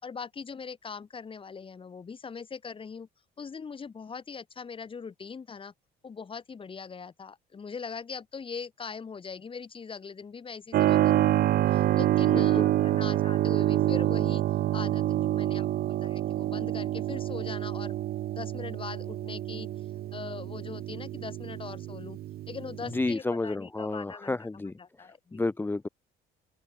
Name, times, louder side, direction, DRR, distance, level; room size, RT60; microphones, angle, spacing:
voice 1, 0.0-3.1 3.4-5.7 6.0-14.4 14.7-18.0 18.3-19.7 20.1-22.2 22.5-25.4, left 5 dB, 30° left, 4.4 m, -41 dB
Keyboard (musical), 10.7-23.1, right 14 dB, 65° right, 1.0 m, -27 dB
voice 2, 12.3-13.0 22.8-24.7 25.3-25.9, left 2 dB, 10° left, 0.9 m, -31 dB
open air
cardioid pair, 110°, 17 cm